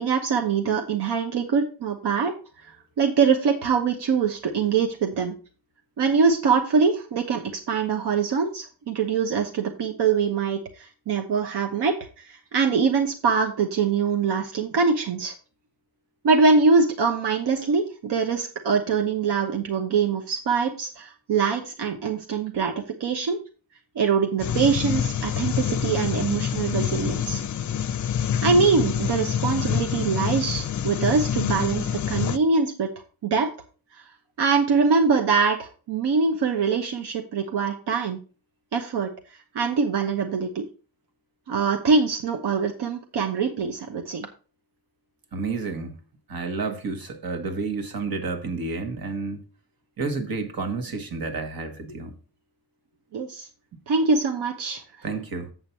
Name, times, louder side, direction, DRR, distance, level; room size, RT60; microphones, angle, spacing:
voice 1, 0.0-2.3 2.6-2.7 3.0-5.3 6.0-15.3 16.2-23.4 23.9-27.4 28.4-32.9 33.2-33.5 34.4-38.2 38.7-39.1 39.5-40.7 41.5-44.3 53.1-53.5 53.9-54.8, right 5 dB, 85° right, 1.0 m, -23 dB
sound 1, 24.4-32.4, left 9 dB, 50° left, 0.5 m, -26 dB
voice 2, 45.3-46.0 46.3-49.4 50.0-52.1 55.0-55.5, right 4 dB, 60° right, 1.5 m, -30 dB
7.8 x 7.0 x 4.4 m
wide cardioid pair, 130°, 39 cm